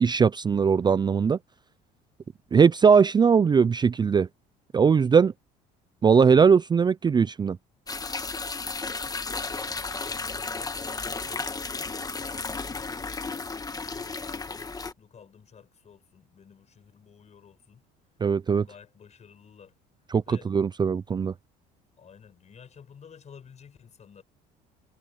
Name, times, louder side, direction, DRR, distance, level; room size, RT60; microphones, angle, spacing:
voice 1, 0.0-1.4 2.5-4.3 4.7-5.3 6.0-7.6 18.2-18.7 20.1-21.3, right 6 dB, 25° right, 0.5 m, -20 dB
sound 1, 7.9-14.9, left 4 dB, 20° left, 1.5 m, -33 dB
voice 2, 9.0-11.5 11.9-13.2 13.5-17.9 18.6-19.7 20.3-20.5 22.0-24.2, left 7 dB, 40° left, 5.3 m, -52 dB
supercardioid pair, 90°, 18 cm